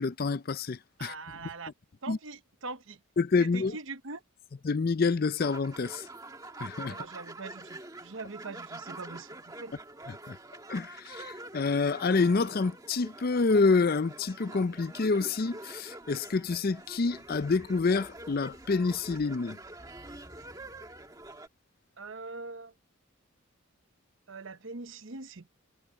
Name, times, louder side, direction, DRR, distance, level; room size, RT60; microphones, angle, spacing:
voice 1, 0.0-1.1 1.4-1.5 2.1-2.2 3.2-3.8 4.6-6.1 6.6-7.0 10.3-10.4 10.7-19.6, left 4 dB, 45° left, 0.5 m, -27 dB
voice 2, 1.0-1.7 2.0-3.0 3.4-4.2 6.9-9.8 22.0-22.7 24.3-25.5, right 3 dB, 65° right, 1.0 m, -42 dB
sound 1, 5.4-21.5, right 2 dB, 15° right, 2.0 m, -46 dB
sound 2, 16.0-21.4, equal, 15° left, 5.3 m, -58 dB
head